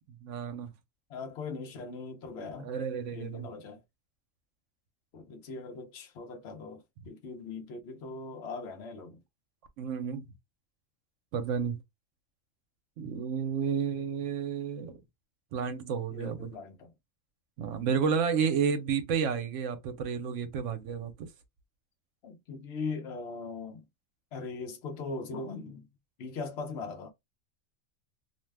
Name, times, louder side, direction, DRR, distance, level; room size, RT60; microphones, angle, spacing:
voice 1, 0.2-0.7 2.6-3.5 9.8-10.3 11.3-11.8 13.0-15.0 15.5-16.5 17.6-21.3, right 6 dB, 70° right, 0.9 m, -31 dB
voice 2, 1.1-2.7 3.1-3.8 5.1-9.2 16.1-16.9 22.2-23.9 24.3-25.9 26.2-27.1, left 4 dB, 60° left, 0.9 m, -40 dB
2.6 x 2.1 x 3.2 m
omnidirectional pair, 1.4 m